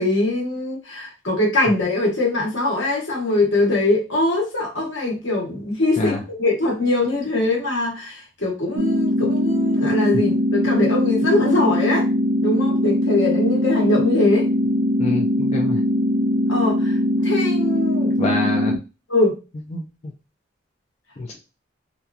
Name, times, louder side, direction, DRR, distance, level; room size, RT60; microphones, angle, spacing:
voice 1, 0.0-12.1 12.4-14.5 16.5-18.1 19.1-19.4, left 2 dB, 75° left, 1.2 m, -22 dB
sound 1, 8.8-18.8, equal, 75° right, 0.4 m, -21 dB
voice 2, 15.0-15.8 18.2-18.8 19.7-19.8 21.2-21.4, left 2 dB, 35° left, 0.3 m, -25 dB
2.8 x 2.3 x 2.3 m
head